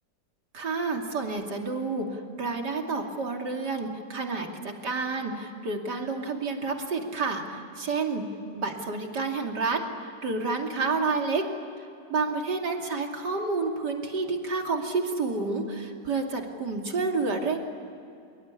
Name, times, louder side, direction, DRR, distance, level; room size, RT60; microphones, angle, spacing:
voice 1, 0.5-8.2 8.5-11.5 12.1-17.6, right 3 dB, 75° right, 2 dB, 3.3 m, -29 dB
25.0 x 24.0 x 9.8 m, 2.5 s
omnidirectional pair, 1.8 m